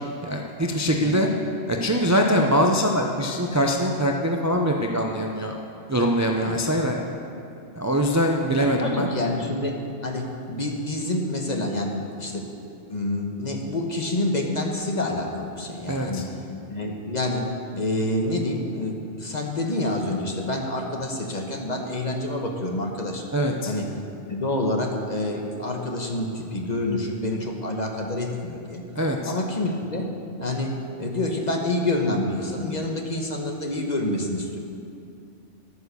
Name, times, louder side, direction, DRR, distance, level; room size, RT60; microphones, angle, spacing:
voice 1, 0.2-1.3 1.7-5.5 5.9-7.0 7.7-9.1 15.9-16.2 23.3-23.7 29.0-29.3, equal, 20° right, 1 dB, 0.6 m, -23 dB
voice 2, 8.6-9.8 10.0-12.5 12.9-16.3 16.7-23.2 23.7-23.9 24.3-28.8 29.2-30.1 30.4-34.6, left 1 dB, 35° left, 1 dB, 1.3 m, -27 dB
11.5 x 9.5 x 6.8 m, 2.6 s
omnidirectional pair, 1.2 m